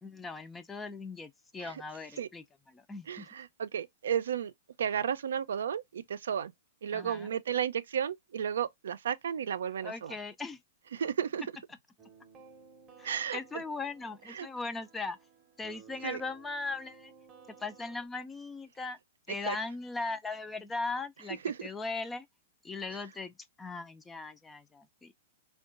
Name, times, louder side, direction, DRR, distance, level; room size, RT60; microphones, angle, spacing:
voice 1, 0.0-3.3 6.9-7.3 9.8-10.6 13.0-15.2 15.6-17.1 17.6-19.0 19.3-22.3 22.6-25.1, left 3 dB, 10° left, 0.3 m, -39 dB
voice 2, 3.1-4.5 4.8-6.5 6.8-10.1 10.9-11.4 13.0-13.6 14.3-14.5 16.0-16.2 19.5-19.6 21.4-21.7, right 8 dB, 85° right, 0.4 m, -33 dB
sound 1, 12.0-18.1, right 6 dB, 20° right, 0.7 m, -56 dB
3.6 x 2.3 x 2.4 m
hypercardioid pair, 150°, 0 cm